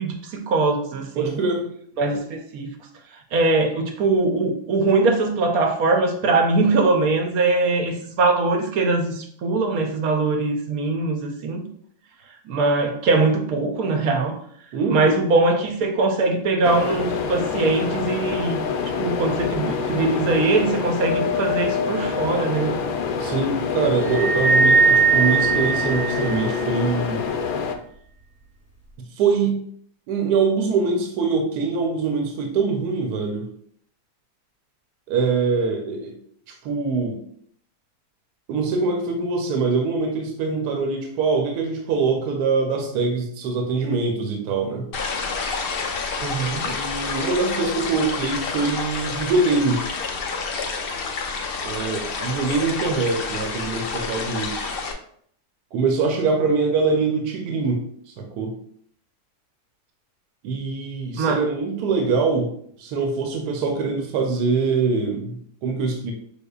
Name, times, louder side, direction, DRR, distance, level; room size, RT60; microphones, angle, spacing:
voice 1, 0.0-1.4 2.0-2.8 3.3-11.7 12.5-14.4 14.9-18.6 19.0-22.8 46.2-46.6 61.2-61.4, right 3 dB, 70° right, 4 dB, 1.0 m, -21 dB
voice 2, 1.2-1.7 14.7-15.0 23.2-27.2 29.2-29.6 30.1-33.5 35.1-36.1 36.6-37.2 38.5-44.9 46.6-49.8 51.6-54.7 55.7-58.5 60.4-62.5 62.8-66.1, right 4 dB, 85° right, 3 dB, 1.2 m, -23 dB
sound 1, 16.6-27.8, left 6 dB, 70° left, 0.9 m, -26 dB
sound 2, 24.1-26.7, right 5 dB, 20° right, 1.3 m, -19 dB
sound 3, 44.9-54.9, left 4 dB, 85° left, 0.5 m, -29 dB
5.4 x 3.9 x 2.3 m, 0.63 s
omnidirectional pair, 1.7 m